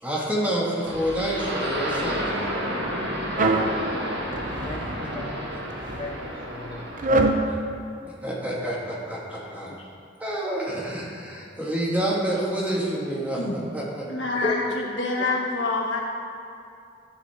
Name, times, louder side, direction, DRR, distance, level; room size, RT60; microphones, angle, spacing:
voice 1, 0.0-2.4 8.0-9.7 10.2-13.4 13.7-14.1, right 1 dB, 10° right, -5 dB, 1.6 m, -28 dB
sound 1, 0.9-7.2, equal, 65° right, 1.6 m, -30 dB
voice 2, 2.0-2.6 13.4-13.6 14.1-16.0, left 3 dB, 70° left, -1 dB, 1.5 m, -28 dB
sound 2, 3.4-3.7 4.3-5.0 5.7-6.1 7.0-7.4, right 2 dB, 45° right, 0.6 m, -23 dB
voice 3, 4.6-5.2 6.0-7.3 9.8-9.9 14.3-14.8 15.2-15.3, left 3 dB, 25° left, 1 dB, 0.5 m, -33 dB
12.0 x 8.3 x 3.4 m, 2.5 s
head